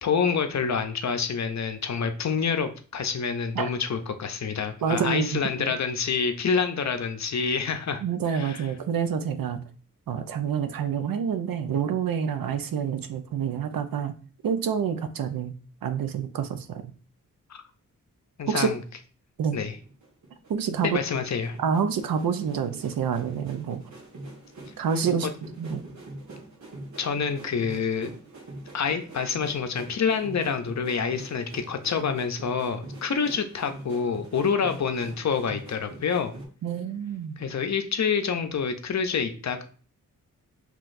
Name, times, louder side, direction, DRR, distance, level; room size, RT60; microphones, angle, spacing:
voice 1, 0.0-8.0 8.3-8.6 17.5-17.6 18.4-18.8 19.5-19.7 20.8-21.6 27.0-28.1 28.7-36.3 37.4-39.6, left 6 dB, 55° left, 7 dB, 0.6 m, -27 dB
voice 2, 4.8-5.7 8.0-9.6 10.1-14.1 14.4-15.6 15.8-16.9 18.5-18.7 19.4-19.6 20.5-20.9 21.6-23.8 24.8-25.3 25.6-25.8 36.6-37.4, right 7 dB, 85° right, 9 dB, 0.6 m, -27 dB
sound 1, 19.7-36.5, right 2 dB, 55° right, 1.3 m, -44 dB
5.6 x 3.0 x 2.6 m, 0.40 s
wide cardioid pair, 85°, 34 cm